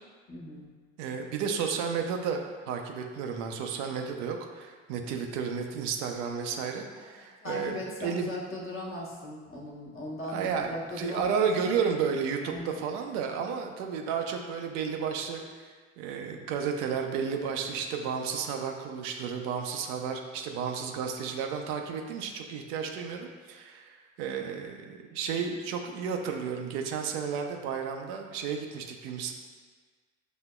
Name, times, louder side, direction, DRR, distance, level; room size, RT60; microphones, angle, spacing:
voice 1, 0.3-0.7 7.0-11.2 11.8-12.0 12.5-12.8, left 1 dB, 35° left, -4 dB, 1.1 m, -39 dB
voice 2, 1.0-8.3 10.3-15.7 16.0-29.3, right 6 dB, 70° right, 3 dB, 0.5 m, -32 dB
6.1 x 2.8 x 2.2 m, 1.5 s
hypercardioid pair, 50°, 37 cm